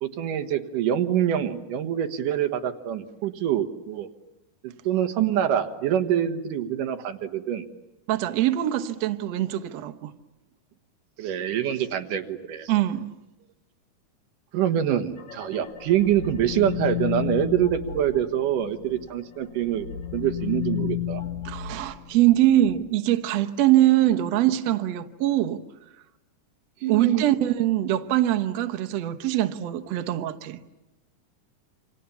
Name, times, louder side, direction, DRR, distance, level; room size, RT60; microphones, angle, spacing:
voice 1, 0.0-4.1 4.6-7.7 11.2-12.7 14.5-19.9 20.1-21.2 26.8-27.2, right 10 dB, 90° right, 3.0 m, -25 dB
voice 2, 8.1-10.1 12.7-13.1 21.5-25.6 26.9-30.6, right 13 dB, 65° right, 2.0 m, -23 dB
sound 1, 15.2-19.1 19.4-22.8, left 11 dB, 60° left, 2.8 m, -33 dB
28.0 x 26.5 x 7.1 m
omnidirectional pair, 3.6 m